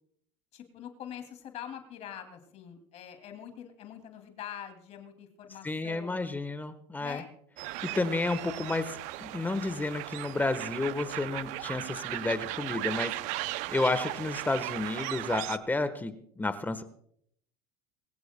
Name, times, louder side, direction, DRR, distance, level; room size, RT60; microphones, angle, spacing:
voice 1, 0.5-6.2 7.0-7.3, left 9 dB, 50° left, 6 dB, 2.5 m, -44 dB
voice 2, 5.6-7.2 7.8-13.1 13.7-16.8, left 2 dB, 15° left, 11 dB, 1.2 m, -31 dB
sound 1, 7.6-15.6, right 17 dB, 65° right, 0.6 m, -37 dB
22.5 x 15.5 x 2.2 m, 0.68 s
supercardioid pair, 100°, 14 cm